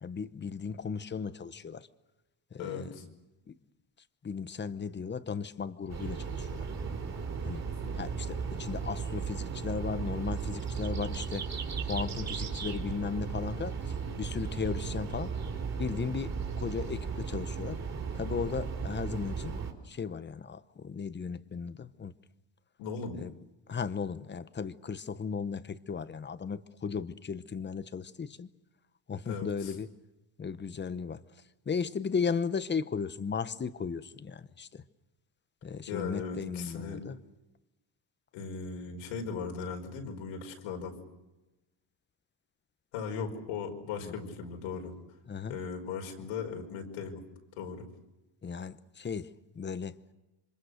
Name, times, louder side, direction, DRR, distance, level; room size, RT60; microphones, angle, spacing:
voice 1, 0.0-1.9 2.5-2.9 3.5-3.6 4.2-6.7 7.4-7.7 8.0-11.5 11.8-15.3 15.8-17.8 18.1-22.1 23.2-23.3 23.7-28.5 29.1-29.9 30.4-31.2 31.7-34.8 35.6-37.2 44.0-44.1 45.3-45.6 48.4-50.0, left 6 dB, 20° left, 0.9 m, -36 dB
voice 2, 2.6-3.0 7.8-7.9 22.8-23.2 29.3-29.7 35.9-37.0 38.3-40.9 42.9-44.9 45.5-47.2 47.6-47.8, left 5 dB, 90° left, 5.3 m, -38 dB
sound 1, 5.9-19.7, right 5 dB, 30° right, 4.1 m, -36 dB
27.5 x 25.5 x 6.6 m
cardioid pair, 130°, 49 cm